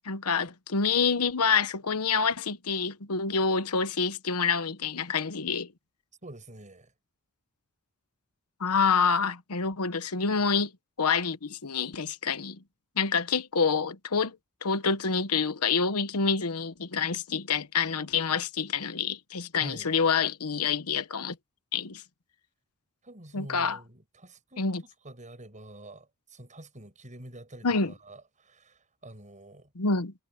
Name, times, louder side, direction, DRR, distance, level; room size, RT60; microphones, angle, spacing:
voice 1, 0.0-5.7 8.6-10.7 11.0-12.6 13.0-14.4 14.6-21.4 21.7-22.0 23.3-23.8 24.6-24.8 27.6-27.9 29.7-30.1, left 5 dB, 85° left, 1.1 m, -27 dB
voice 2, 6.2-6.9 19.6-19.9 23.0-24.8 25.0-29.7, right 1 dB, 35° right, 7.6 m, -47 dB
head